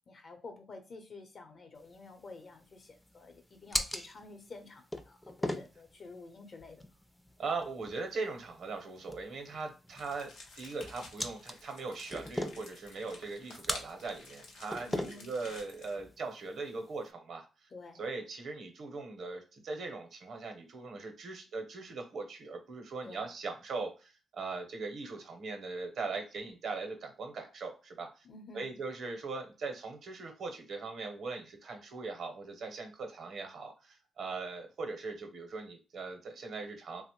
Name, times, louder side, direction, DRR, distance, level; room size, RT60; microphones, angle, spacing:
voice 1, 0.1-6.8 14.8-15.3 17.7-18.0 23.0-23.3 28.2-28.7, left 3 dB, 55° left, 5 dB, 0.7 m, -50 dB
sound 1, 1.8-17.1, left 1 dB, 10° left, 0.4 m, -42 dB
voice 2, 7.4-17.7 18.0-28.2 28.5-37.0, right 3 dB, 70° right, 4 dB, 0.7 m, -40 dB
sound 2, 9.9-16.0, left 3 dB, 90° left, 0.7 m, -53 dB
2.9 x 2.0 x 2.8 m, 0.32 s
cardioid pair, 75°, 0 cm